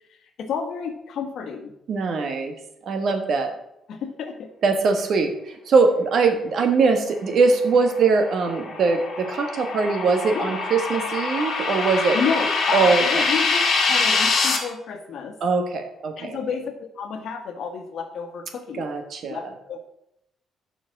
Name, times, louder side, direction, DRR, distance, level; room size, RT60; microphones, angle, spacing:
voice 1, 0.4-1.7 3.1-3.2 3.9-4.5 10.3-10.5 12.0-13.6 13.9-15.4 16.2-18.9 19.2-19.8, left 6 dB, 65° left, 6 dB, 1.4 m, -30 dB
voice 2, 1.9-2.5 2.8-3.5 4.6-12.2 12.7-13.0 15.4-16.4 18.7-19.4, right 4 dB, 50° right, 6 dB, 1.4 m, -21 dB
sound 1, 7.8-14.6, left 4 dB, 45° left, 1.9 m, -24 dB
7.2 x 5.9 x 7.3 m, 0.80 s
cardioid pair, 165°, 0 cm